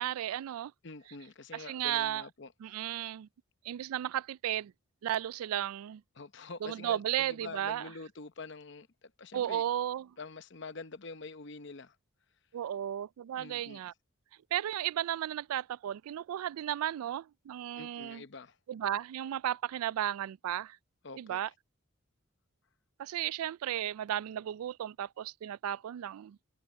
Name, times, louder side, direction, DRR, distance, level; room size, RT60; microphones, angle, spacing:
voice 1, 0.0-0.7 1.5-2.2 2.6-3.3 3.6-4.7 5.0-6.0 6.6-7.9 9.3-10.1 12.5-13.9 14.5-18.2 18.7-20.8 21.2-21.5 23.0-26.4, right 11 dB, 85° right, 0.3 m, -34 dB
voice 2, 0.8-2.8 6.2-9.6 10.2-12.0 13.4-13.8 17.8-18.6 21.0-21.4, left 3 dB, 55° left, 0.8 m, -46 dB
head